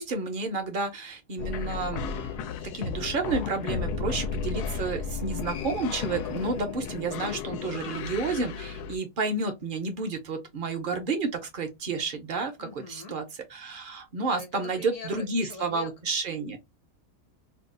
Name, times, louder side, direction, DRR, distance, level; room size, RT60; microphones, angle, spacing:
voice 1, 0.0-2.3 2.6-13.2 13.5-16.6, right 3 dB, 50° right, 0.6 m, -31 dB
sound 1, 1.4-9.0, left 6 dB, 90° left, 1.1 m, -34 dB
voice 2, 12.6-13.2 14.3-15.9, left 4 dB, 60° left, 1.1 m, -43 dB
2.7 x 2.3 x 3.7 m
omnidirectional pair, 1.6 m